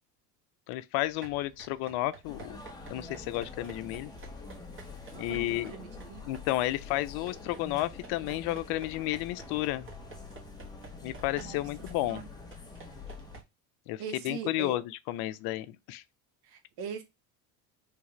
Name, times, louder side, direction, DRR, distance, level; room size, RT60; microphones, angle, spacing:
voice 1, 0.7-2.6 2.9-4.1 5.2-5.7 6.3-9.9 11.0-12.2 13.9-16.0, left 16 dB, 60° left, 0.5 m, -32 dB
sound 1, 1.0-13.4, right 4 dB, 30° right, 1.2 m, -52 dB
sound 2, 2.2-13.4, left 4 dB, 10° left, 0.7 m, -46 dB
voice 2, 5.1-6.3 11.3-11.6 12.0-12.2 14.0-14.8 16.4-17.0, right 7 dB, 60° right, 1.0 m, -41 dB
3.2 x 2.4 x 3.0 m
supercardioid pair, 90°, 42 cm